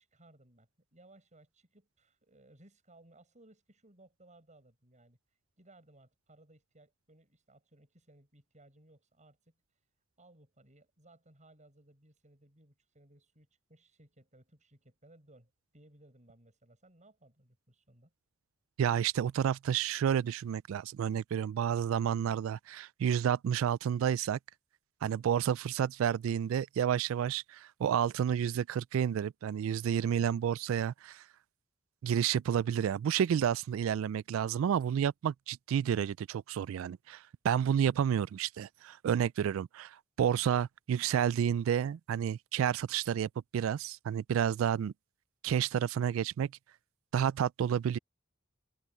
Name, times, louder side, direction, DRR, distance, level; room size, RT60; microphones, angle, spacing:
voice 1, 0.0-5.2 5.6-9.5 10.2-18.1, right 1 dB, 35° right, 7.9 m, -62 dB
voice 2, 18.8-24.4 25.0-31.2 32.0-44.9 45.4-46.5 47.1-48.0, right 8 dB, 75° right, 0.3 m, -30 dB
head